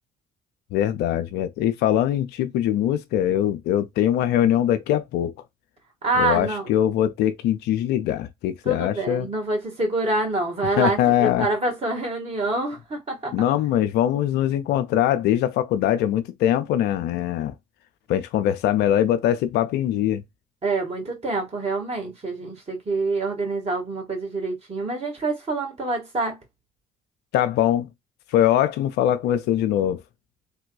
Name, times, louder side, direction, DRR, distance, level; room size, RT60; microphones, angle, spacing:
voice 1, 0.7-5.3 6.2-9.3 10.8-11.5 13.3-17.5 18.1-20.2 27.3-27.9 28.3-30.0, left 11 dB, 65° left, 0.4 m, -22 dB
voice 2, 6.0-6.7 8.6-13.3 20.6-26.4, right 2 dB, 35° right, 1.7 m, -26 dB
3.3 x 2.2 x 2.3 m
hypercardioid pair, 45°, 18 cm